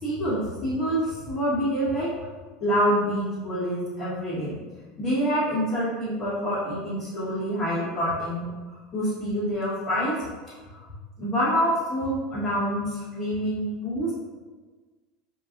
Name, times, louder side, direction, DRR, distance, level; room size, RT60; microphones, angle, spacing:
voice 1, 0.0-2.1 2.6-4.6 5.0-10.9 11.2-14.1, equal, 15° left, -15 dB, 1.3 m, -27 dB
4.3 x 2.3 x 2.5 m, 1.4 s
supercardioid pair, 150°, 0 cm